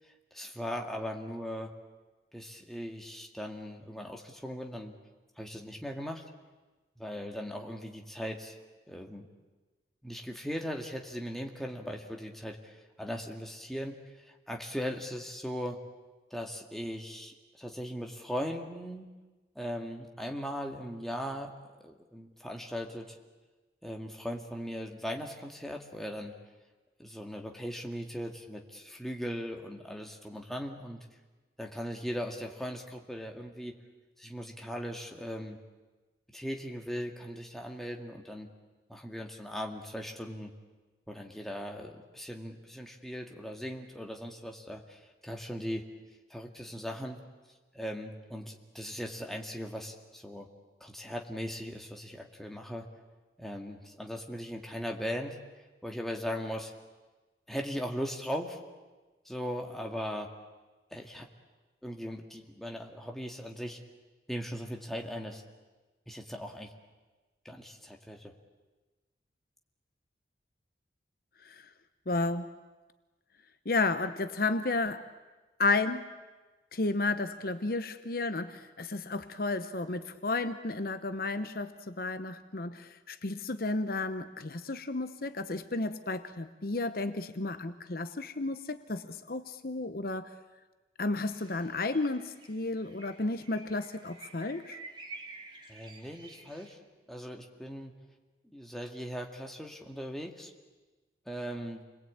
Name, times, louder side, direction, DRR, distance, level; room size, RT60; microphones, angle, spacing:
voice 1, 0.3-1.7 2.3-5.0 5.4-6.2 7.0-8.6 8.9-9.3 10.0-15.8 16.3-19.1 19.6-21.5 21.8-23.1 23.8-26.3 27.0-31.1 31.6-33.8 34.2-35.6 36.3-38.5 38.9-40.5 41.1-45.9 46.3-47.2 47.7-50.5 50.8-52.9 53.4-55.4 55.8-56.7 57.5-58.6 59.3-60.3 60.9-61.3 61.8-63.8 64.3-65.4 66.1-66.7 67.4-68.3 95.7-96.8 97.1-97.9 98.5-100.5 101.3-101.8, equal, ahead, 1 dB, 2.1 m, -39 dB
voice 2, 72.1-72.5 73.6-75.1 75.6-76.1 76.7-90.3 91.0-94.8, left 3 dB, 55° left, 10 dB, 0.9 m, -32 dB
sound 1, 91.3-96.7, right 3 dB, 25° right, 2.8 m, -50 dB
29.0 x 22.0 x 8.8 m, 1.2 s
head